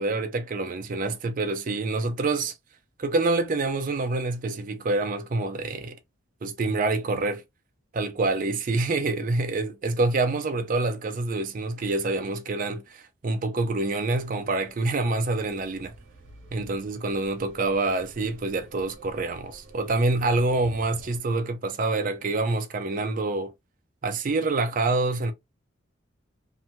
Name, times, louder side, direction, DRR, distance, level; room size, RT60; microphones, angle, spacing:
voice 1, 0.0-2.5 3.0-6.0 6.4-7.4 7.9-15.9 16.5-23.5 24.0-25.3, right 3 dB, 40° right, 0.4 m, -26 dB
sound 1, 13.9-21.2, right 2 dB, 90° right, 0.8 m, -50 dB
2.6 x 2.1 x 2.9 m
head